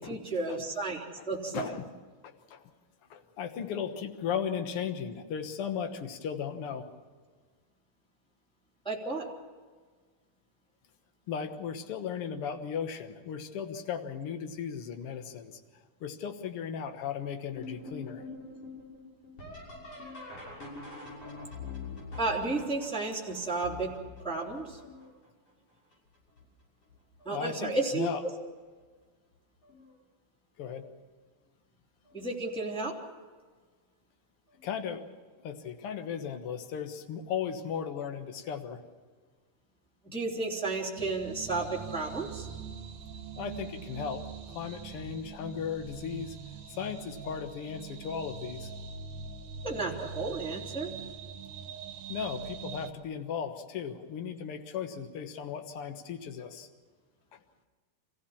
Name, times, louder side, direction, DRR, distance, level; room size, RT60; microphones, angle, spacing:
voice 1, 0.0-1.7 8.8-9.3 22.2-23.9 24.2-24.8 27.2-28.1 32.1-33.0 40.0-42.5 49.6-50.9, right 3 dB, ahead, -3 dB, 2.5 m, -32 dB
voice 2, 1.5-1.9 2.2-2.7 3.1-6.9 11.3-15.6 16.0-18.2 27.3-28.2 30.6-30.9 34.6-35.0 35.4-38.8 43.4-46.4 46.7-48.7 52.1-56.7 57.3-57.4, left 7 dB, 60° left, 7 dB, 1.5 m, -36 dB
sound 1, 17.6-25.3 25.9-26.4 26.9-27.5 28.8-28.9 29.6-30.0 32.1-32.2 34.5-34.6, left 3 dB, 40° left, 7.4 m, -45 dB
sound 2, 41.0-52.9, right 6 dB, 65° right, 2.4 m, -43 dB
26.5 x 15.5 x 7.2 m, 1.5 s
omnidirectional pair, 4.3 m